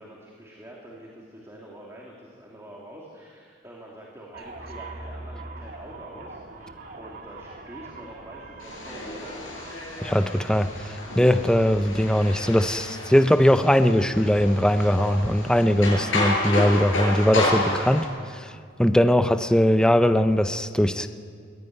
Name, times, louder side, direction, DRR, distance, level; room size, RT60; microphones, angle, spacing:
voice 1, 0.0-9.4, equal, 15° right, -3 dB, 2.9 m, -45 dB
sound 1, 4.3-14.7, right 2 dB, 50° right, 2.0 m, -43 dB
sound 2, 8.6-18.1, left 2 dB, 85° left, 7.5 m, -30 dB
voice 2, 10.0-18.1 18.3-18.5 18.8-21.1, equal, 5° left, 9 dB, 0.6 m, -20 dB
22.0 x 16.0 x 9.3 m, 2.2 s
head